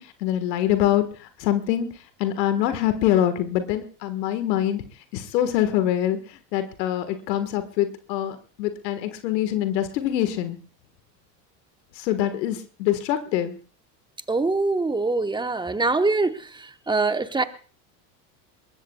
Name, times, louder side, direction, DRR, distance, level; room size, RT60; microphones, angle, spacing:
voice 1, 0.0-1.9 2.2-4.8 5.1-10.6 11.9-13.6, left 11 dB, 75° left, 10 dB, 1.7 m, -24 dB
voice 2, 14.3-17.4, right 3 dB, 10° right, 9 dB, 1.1 m, -24 dB
22.5 x 19.5 x 2.3 m, 0.39 s
hypercardioid pair, 90°, 50 cm